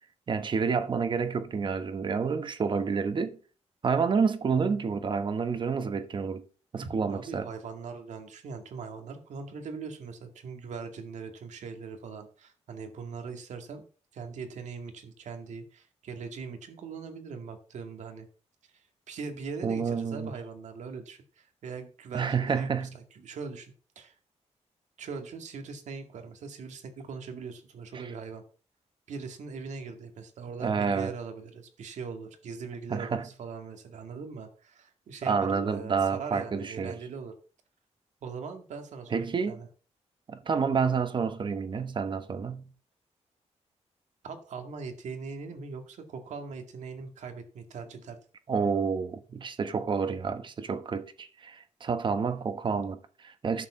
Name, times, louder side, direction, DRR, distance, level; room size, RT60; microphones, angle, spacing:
voice 1, 0.3-3.4 3.8-6.4 6.7-7.5 19.6-20.3 22.1-22.9 30.6-31.1 32.9-33.2 35.2-36.9 39.1-39.6 40.3-42.7 48.5-53.7, right 5 dB, 40° right, 1.1 m, -29 dB
voice 2, 6.8-13.9 14.1-18.3 18.7-24.1 25.0-28.4 29.1-37.3 38.2-39.7 44.2-48.2, right 5 dB, 90° right, 2.1 m, -41 dB
11.0 x 4.8 x 7.2 m
wide cardioid pair, 145°, 12 cm